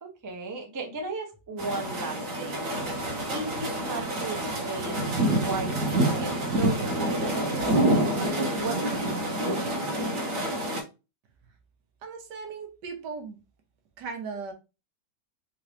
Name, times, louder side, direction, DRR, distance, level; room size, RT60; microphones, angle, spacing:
voice 1, 0.0-2.7 3.3-5.0 5.3-8.1 8.6-9.4, right 3 dB, 25° right, 0.4 m, -36 dB
sound 1, 1.6-10.8, right 1 dB, 55° right, 1.3 m, -27 dB
voice 2, 12.0-13.4 14.0-14.5, right 5 dB, 75° right, 1.5 m, -37 dB
3.9 x 3.1 x 2.7 m
omnidirectional pair, 1.8 m